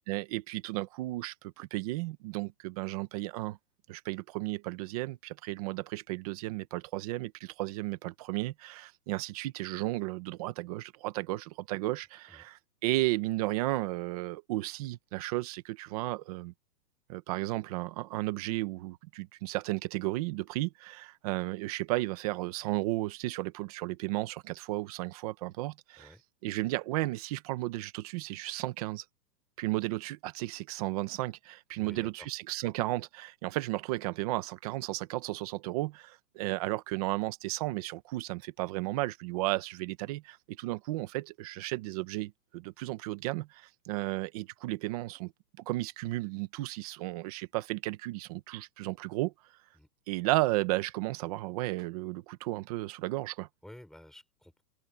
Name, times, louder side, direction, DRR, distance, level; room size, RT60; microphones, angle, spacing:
voice 1, 0.1-3.6 3.9-16.5 17.1-26.1 26.4-29.0 29.6-45.3 45.6-49.3 50.1-53.5, right 19 dB, 25° right, 0.9 m, -34 dB
voice 2, 31.7-32.3 49.7-49.9 53.6-54.6, left 1 dB, ahead, 5.3 m, -52 dB
hypercardioid pair, 165°, 49 cm